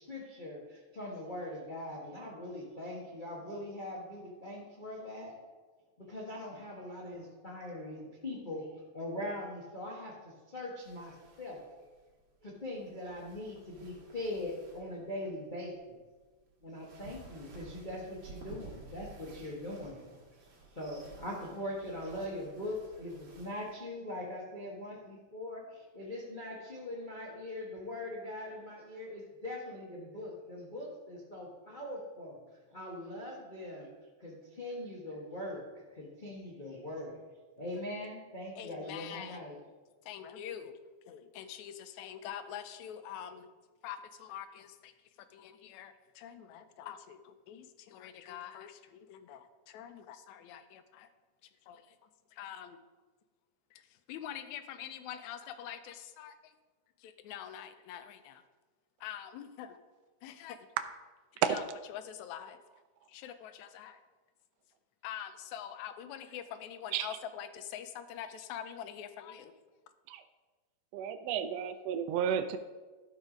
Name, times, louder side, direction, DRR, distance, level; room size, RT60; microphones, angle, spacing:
voice 1, 0.0-5.3 6.0-11.9 12.4-16.0 16.6-20.0 20.7-32.4 32.7-33.9 34.2-37.1 37.6-39.6, left 1 dB, 55° left, -4 dB, 0.5 m, -41 dB
sound 1, 10.8-23.7, right 3 dB, 55° right, 2.7 m, -54 dB
voice 2, 38.6-39.4 40.1-40.7 41.1-43.5 43.8-44.9 45.3-51.1 51.7-52.0 52.3-52.8 53.7-53.8 54.1-56.5 57.0-58.4 59.0-59.8 60.2-60.7 61.3-61.6 61.9-62.6 63.1-64.0 65.0-69.5, left 9 dB, 85° left, 10 dB, 2.0 m, -45 dB
voice 3, 70.9-72.6, right 9 dB, 80° right, 9 dB, 1.5 m, -32 dB
12.5 x 4.9 x 5.0 m, 1.3 s
omnidirectional pair, 3.3 m